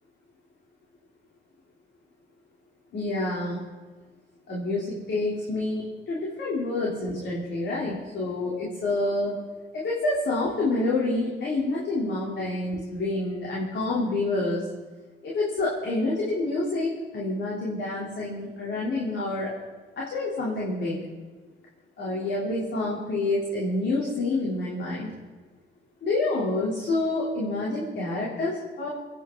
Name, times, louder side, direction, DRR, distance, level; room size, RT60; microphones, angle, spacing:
voice 1, 2.9-3.6 4.5-9.4 9.7-14.7 15.2-19.5 20.0-21.0 22.0-25.1 26.0-28.9, left 2 dB, 60° left, -5 dB, 3.3 m, -28 dB
25.0 x 9.4 x 3.8 m, 1.4 s
cardioid pair, 90°, 20 cm